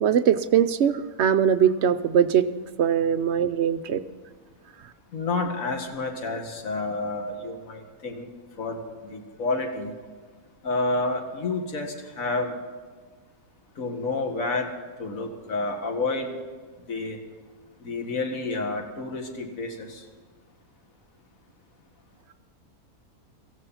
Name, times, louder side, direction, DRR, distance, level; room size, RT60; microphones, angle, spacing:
voice 1, 0.0-2.5 2.8-4.0, right 8 dB, 60° right, 11 dB, 0.7 m, -21 dB
voice 2, 5.1-8.3 8.6-9.9 10.6-12.6 13.8-14.7 15.0-16.4 16.9-17.2 17.8-20.0, left 3 dB, 60° left, 3 dB, 2.2 m, -29 dB
17.0 x 15.0 x 5.6 m, 1.5 s
omnidirectional pair, 1.6 m